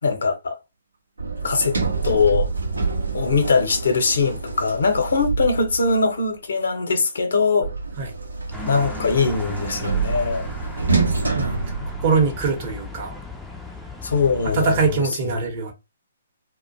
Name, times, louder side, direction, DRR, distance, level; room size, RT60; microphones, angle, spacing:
voice 1, 0.0-0.6 1.4-1.8 2.0-2.5 3.1-7.7 8.6-10.4 11.2-11.9 14.0-15.5, left 4 dB, 70° left, 0.7 m, -22 dB
Sliding door, 1.2-6.0 7.6-12.6, right 4 dB, 80° right, 0.6 m, -27 dB
sound 1, 8.5-15.0, left 3 dB, ahead, 0.4 m, -37 dB
voice 2, 12.0-13.2 14.5-15.7, right 5 dB, 40° right, 0.8 m, -22 dB
2.4 x 2.1 x 2.6 m
figure-of-eight pair, 130°, 0 cm